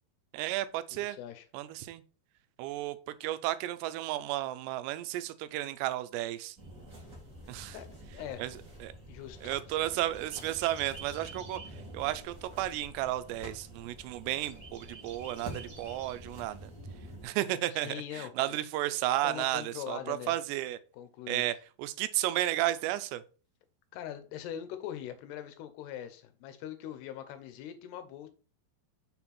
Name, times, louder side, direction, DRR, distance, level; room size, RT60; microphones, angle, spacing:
voice 1, 0.3-1.2 1.5-2.0 2.6-6.6 7.5-7.8 8.4-8.5 8.8-8.9 9.4-16.7 17.2-20.8 21.3-23.2, right 15 dB, 85° right, 2.7 m, -33 dB
voice 2, 0.9-1.5 7.7-7.9 8.1-8.4 9.1-9.8 17.7-18.6 19.2-20.4 20.9-21.4 23.9-28.3, left 10 dB, 80° left, 2.7 m, -42 dB
sound 1, 6.6-17.2, right 1 dB, 45° right, 1.1 m, -47 dB
6.4 x 4.3 x 4.1 m
omnidirectional pair, 4.9 m